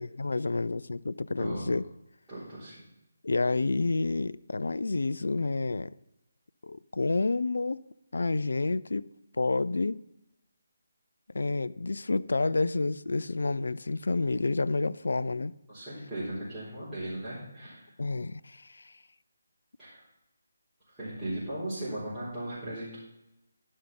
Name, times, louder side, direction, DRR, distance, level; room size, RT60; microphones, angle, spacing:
voice 1, 0.0-1.8 3.2-5.9 6.6-7.8 8.1-9.1 9.4-10.0 11.3-15.5 18.0-18.9, left 3 dB, 65° left, 0.3 m, -29 dB
voice 2, 1.4-1.7 2.3-2.9 15.7-17.9 19.8-20.1 20.9-23.0, right 1 dB, 5° right, 3.9 m, -37 dB
11.5 x 5.4 x 5.7 m
figure-of-eight pair, 150°, 0 cm